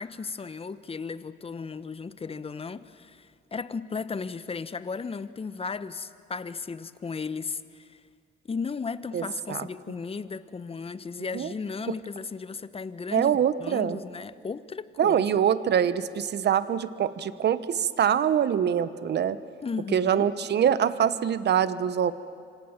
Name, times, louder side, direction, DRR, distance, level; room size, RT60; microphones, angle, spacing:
voice 1, 0.0-8.0 8.5-15.3 19.6-20.3, left 5 dB, 30° left, 14 dB, 1.0 m, -35 dB
voice 2, 9.1-9.7 11.3-11.5 11.9-12.0 13.1-14.0 15.0-19.4 19.9-22.1, right 9 dB, 60° right, 14 dB, 1.1 m, -24 dB
26.5 x 25.5 x 7.3 m, 2.2 s
cardioid pair, 90°, 20 cm